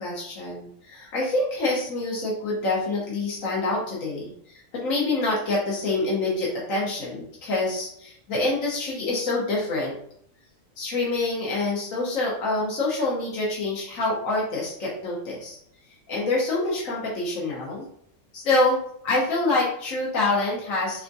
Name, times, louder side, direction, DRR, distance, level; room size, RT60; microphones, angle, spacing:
voice 1, 0.0-9.9 10.8-15.6 16.1-17.8 18.3-18.8 19.0-21.0, left 2 dB, 80° left, -4 dB, 1.4 m, -26 dB
3.6 x 3.4 x 2.6 m, 0.66 s
omnidirectional pair, 1.4 m